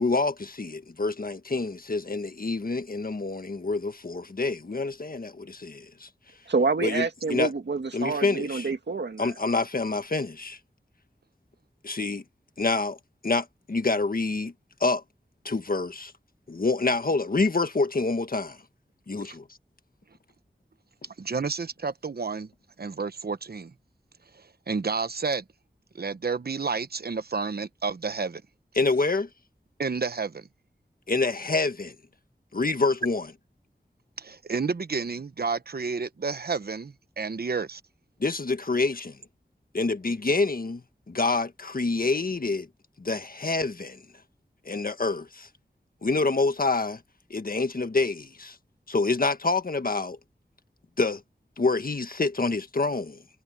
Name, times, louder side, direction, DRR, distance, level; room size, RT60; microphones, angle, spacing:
voice 1, 0.0-6.1 6.8-7.5 7.9-8.7 9.2-10.6 11.8-12.2 12.6-13.0 13.2-14.5 14.8-15.0 15.4-16.1 16.5-18.6 19.1-19.5 28.7-29.3 31.1-31.9 32.5-33.2 38.2-39.2 39.7-42.7 43.0-44.0 44.6-45.5 46.0-47.0 47.3-48.6 48.9-50.2 51.0-51.2 51.6-53.2, left 3 dB, 55° left, 1.5 m, -27 dB
voice 2, 6.5-9.3, right 4 dB, 85° right, 2.0 m, -27 dB
voice 3, 21.2-22.5 22.8-23.7 24.3-25.4 25.9-28.4 29.8-30.5 34.2-37.8, right 4 dB, 65° right, 1.0 m, -30 dB
wide cardioid pair, 65°, 17 cm